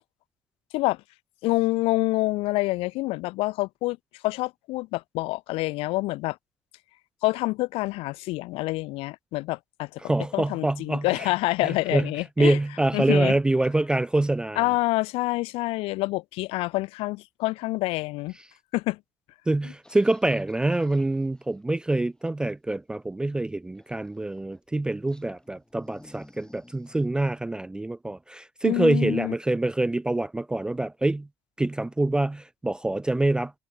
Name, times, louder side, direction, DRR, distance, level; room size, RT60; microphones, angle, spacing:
voice 1, 1.4-4.0 4.2-6.4 7.2-10.0 10.3-12.6 12.9-13.4 14.5-18.3 18.7-19.0 28.6-29.3, left 21 dB, 70° left, 1.6 m, -27 dB
voice 2, 10.0-11.3 11.6-12.1 12.4-14.7 19.5-31.3 31.6-33.5, right 2 dB, 10° right, 0.3 m, -25 dB
sound 1, 19.8-22.2 23.7-24.7 25.1-27.0, left 1 dB, 5° left, 7.9 m, -55 dB
supercardioid pair, 95°, 10 cm